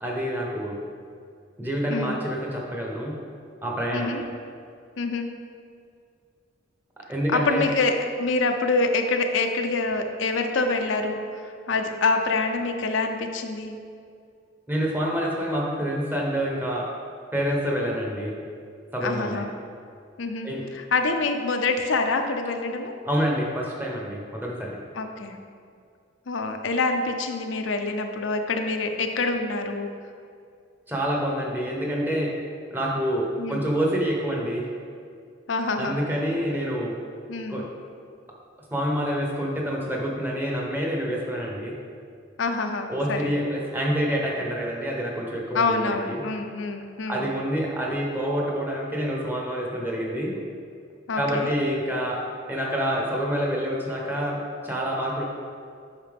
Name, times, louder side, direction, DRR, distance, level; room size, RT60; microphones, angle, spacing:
voice 1, 0.0-0.8 1.6-3.2 3.6-4.1 7.1-7.7 14.7-16.9 17.3-18.3 18.9-19.4 20.4-20.6 23.0-24.8 30.9-32.3 32.7-34.6 35.7-37.0 37.5-37.7 38.7-41.7 42.9-46.2 47.1-50.3 51.1-55.2, equal, 10° right, -2 dB, 0.9 m, -27 dB
voice 2, 1.9-2.2 3.9-4.2 5.0-5.3 7.3-13.8 19.0-19.5 20.2-22.9 24.9-25.4 26.3-29.9 33.4-33.6 35.5-36.0 37.3-37.7 42.4-43.4 45.5-47.3 51.1-51.5, left 3 dB, 70° left, 5 dB, 0.6 m, -26 dB
8.8 x 5.6 x 3.5 m, 2.3 s
head